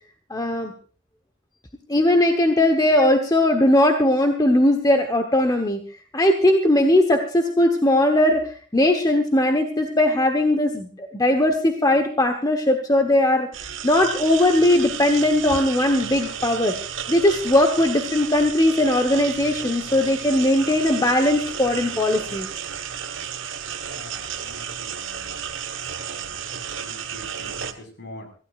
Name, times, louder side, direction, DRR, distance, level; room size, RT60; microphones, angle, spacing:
voice 1, 0.3-0.7 1.9-5.8 6.1-8.4 8.7-13.5 13.8-16.7 17.1-22.5, left 1 dB, 20° left, 5 dB, 1.1 m, -19 dB
sound 1, 13.5-27.7, right 8 dB, 70° right, 1.3 m, -33 dB
voice 2, 23.9-25.4 26.0-28.3, left 1 dB, 55° left, 4 dB, 5.2 m, -44 dB
25.0 x 15.5 x 2.5 m, 0.42 s
head